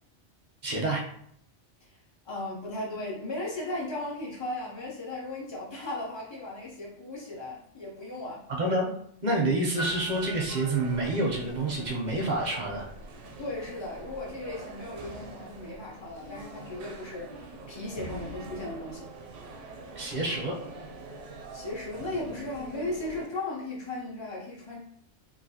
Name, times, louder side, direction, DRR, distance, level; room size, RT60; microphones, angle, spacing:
voice 1, 0.6-1.0 8.5-8.9 9.2-12.9 20.0-20.6, right 2 dB, 50° right, -1 dB, 0.6 m, -28 dB
voice 2, 2.2-8.5 13.4-19.1 21.5-24.8, left 2 dB, 40° left, -4 dB, 0.4 m, -36 dB
sound 1, 9.6-23.3, right 3 dB, 80° right, 0.9 m, -44 dB
Piano, 9.8-11.6 11.9-12.0, right 1 dB, 90° left, 1.4 m, -39 dB
3.1 x 2.6 x 2.7 m, 0.68 s
omnidirectional pair, 1.2 m